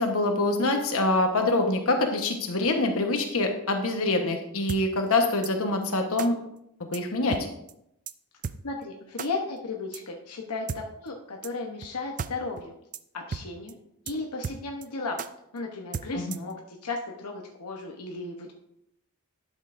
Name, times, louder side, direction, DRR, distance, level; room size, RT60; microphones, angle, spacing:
voice 1, 0.0-6.3 6.8-7.4 16.1-16.4, left 2 dB, 70° left, 3 dB, 1.2 m, -25 dB
sound 1, 4.7-4.8 5.4-5.5 6.2-6.3 6.9-7.0 7.3-7.4 7.7-7.8 8.1-8.2 8.4-8.6 9.2-9.3 9.9-10.0 10.7-10.8 11.4-11.5 11.8-11.9 12.2-12.3 12.6-12.7 12.9-13.0 13.3-13.4 13.7-13.8 14.1-14.2 14.4-14.9 15.2-15.3 15.9-16.5, right 6 dB, 35° right, 0.3 m, -34 dB
voice 2, 8.6-12.7 13.1-13.8 14.1-15.2 15.5-18.5, left 3 dB, 85° left, 1 dB, 1.0 m, -35 dB
11.5 x 7.3 x 2.6 m, 0.79 s
head